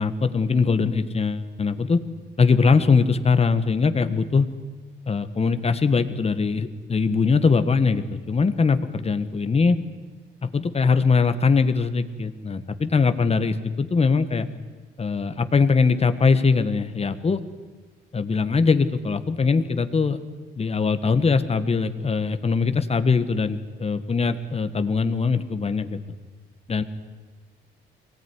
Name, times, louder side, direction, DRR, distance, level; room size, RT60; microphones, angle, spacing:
voice 1, 0.0-2.0 2.4-4.5 5.1-9.8 10.4-14.5 15.0-17.4 18.1-20.2 20.6-26.0 26.7-26.8, left 4 dB, 30° left, 10 dB, 1.6 m, -21 dB
23.0 x 18.0 x 9.9 m, 1.5 s
cardioid pair, 90°, 20 cm